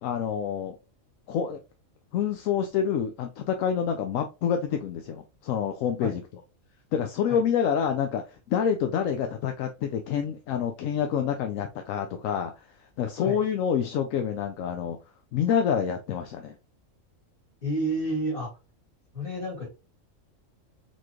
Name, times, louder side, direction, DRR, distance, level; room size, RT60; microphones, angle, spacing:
voice 1, 0.0-0.7 1.3-1.6 2.1-6.2 6.9-12.6 13.0-15.0 15.3-16.5, left 8 dB, 80° left, 5 dB, 0.9 m, -27 dB
voice 2, 17.6-18.5 19.1-19.7, right 1 dB, 40° left, -2 dB, 2.2 m, -30 dB
4.2 x 3.1 x 2.8 m, 0.29 s
omnidirectional pair, 1.4 m